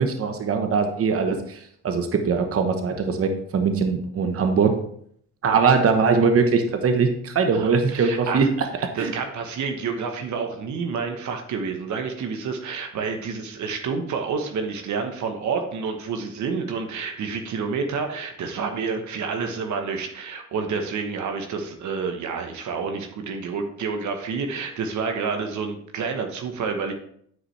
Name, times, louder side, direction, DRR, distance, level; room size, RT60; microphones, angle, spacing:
voice 1, 0.0-4.7 5.4-8.5 9.0-9.1, right 5 dB, 50° right, 6 dB, 1.1 m, -21 dB
voice 2, 7.6-8.5 8.9-26.9, right 5 dB, 70° right, 5 dB, 1.1 m, -29 dB
9.6 x 4.9 x 3.2 m, 0.65 s
cardioid pair, 90°, 30 cm